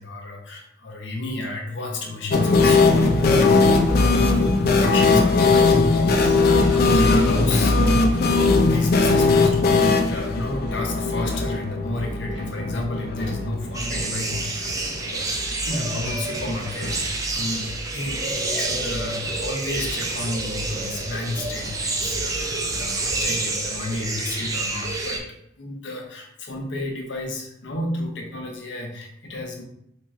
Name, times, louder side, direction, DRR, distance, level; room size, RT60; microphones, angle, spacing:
voice 1, 0.0-8.4 8.7-15.2 15.6-25.2 25.6-29.6, left 2 dB, 70° left, 1 dB, 0.8 m, -31 dB
sound 1, 2.3-14.0 14.3-14.4 14.6-14.7 16.8-16.9, left 3 dB, 50° left, 0.4 m, -19 dB
sound 2, 10.2-23.5, right 1 dB, 65° right, 1.2 m, -39 dB
sound 3, 13.7-25.2, right 2 dB, 20° right, 0.4 m, -28 dB
3.0 x 3.0 x 3.6 m, 0.76 s
head